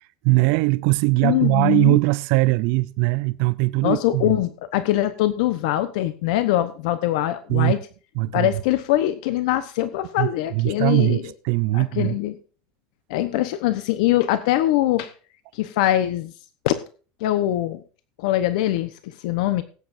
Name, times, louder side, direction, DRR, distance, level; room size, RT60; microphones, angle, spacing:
voice 1, 0.2-4.3 7.5-7.7 8.2-8.5 10.2-12.2, right 23 dB, 65° right, 0.6 m, -20 dB
voice 2, 1.2-2.0 3.8-7.8 8.3-11.3 11.7-12.4 13.1-15.1 15.5-16.3 16.6-16.8 17.2-17.8 18.2-19.6, left 14 dB, 80° left, 1.0 m, -22 dB
19.0 x 9.5 x 2.6 m
supercardioid pair, 135°, 4 cm